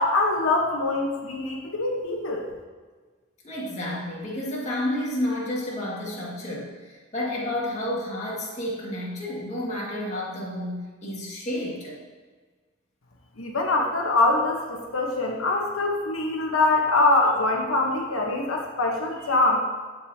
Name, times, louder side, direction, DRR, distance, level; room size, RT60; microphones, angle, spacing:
voice 1, 0.0-2.4 13.4-19.6, left 2 dB, 90° left, 0 dB, 1.1 m, -23 dB
voice 2, 3.4-12.0, left 1 dB, 35° left, -5 dB, 1.9 m, -30 dB
13.5 x 5.3 x 2.8 m, 1.4 s
head